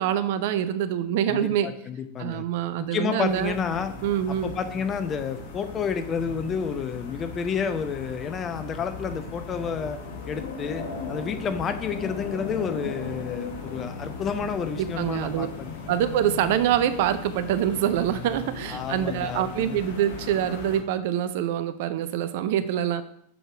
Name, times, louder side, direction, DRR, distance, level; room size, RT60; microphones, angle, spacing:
voice 1, 0.0-1.7 2.2-3.6 4.0-4.6 14.8-15.5 15.9-23.0, right 10 dB, 50° right, 12 dB, 0.5 m, -25 dB
voice 2, 1.3-2.4 2.8-3.9 4.4-10.0 10.3-10.8 11.1-15.8 18.7-19.8, left 6 dB, 25° left, 8 dB, 0.7 m, -30 dB
sound 1, 3.3-20.8, left 4 dB, 55° left, 1.6 m, -37 dB
6.5 x 4.9 x 6.0 m, 0.70 s
figure-of-eight pair, 90°, 0 cm